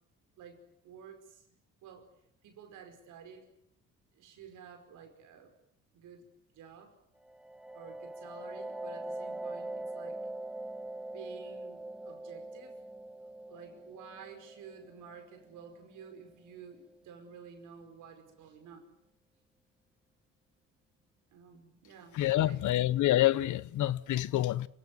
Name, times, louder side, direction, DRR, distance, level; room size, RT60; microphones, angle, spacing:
voice 1, 0.4-1.5 1.8-2.1 2.4-3.5 4.1-5.5 5.9-6.2 6.5-7.0 7.7-10.2 11.1-12.8 13.5-18.9 21.3-22.8, right 6 dB, 85° right, 5.2 m, -51 dB
sound 1, 7.2-16.7, right 2 dB, 5° right, 1.3 m, -43 dB
voice 2, 22.1-24.7, left 14 dB, 75° left, 0.9 m, -27 dB
27.5 x 17.5 x 9.4 m
cardioid pair, 90°, 30 cm